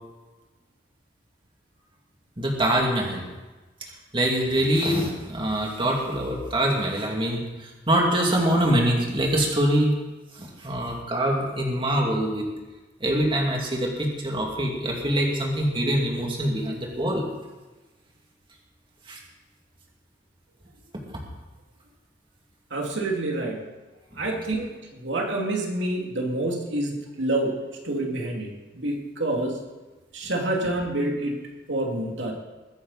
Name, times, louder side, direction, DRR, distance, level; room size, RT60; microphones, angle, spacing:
voice 1, 2.4-3.3 4.1-9.9 10.4-12.4 13.0-17.2 19.1-19.2, right 1 dB, 30° right, -1 dB, 2.6 m, -24 dB
voice 2, 22.7-23.6 24.2-24.7 25.0-27.6 27.8-29.6 30.1-31.4 31.7-32.3, right 2 dB, 85° right, 0 dB, 2.7 m, -27 dB
22.0 x 9.8 x 4.2 m, 1.2 s
head